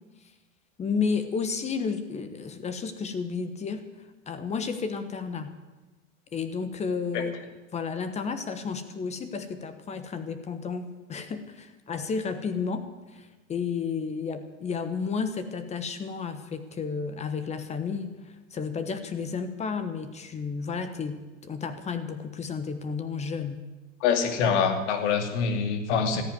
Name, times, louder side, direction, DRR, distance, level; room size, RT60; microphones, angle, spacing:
voice 1, 0.8-3.8 4.3-5.5 6.3-7.4 7.7-23.6, left 5 dB, 15° left, 10 dB, 1.2 m, -32 dB
voice 2, 24.0-26.2, left 6 dB, 60° left, 7 dB, 2.6 m, -25 dB
14.0 x 10.0 x 9.5 m, 1.1 s
hypercardioid pair, 135°, 40 cm